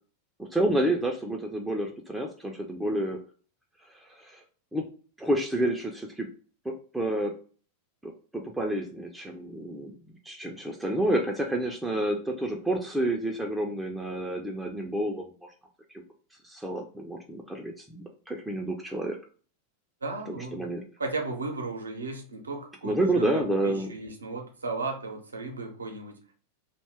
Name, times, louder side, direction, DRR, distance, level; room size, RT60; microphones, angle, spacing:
voice 1, 0.5-3.2 3.9-4.4 4.7-4.9 5.2-6.3 6.7-7.3 8.0-9.9 10.2-15.5 16.4-19.2 20.3-20.8 22.8-23.9, right 1 dB, 5° right, 1 dB, 0.4 m, -29 dB
voice 2, 20.0-20.7 21.0-26.2, right 3 dB, 75° right, 3 dB, 0.6 m, -35 dB
2.6 x 2.2 x 3.2 m, 0.41 s
figure-of-eight pair, 90°, 0 cm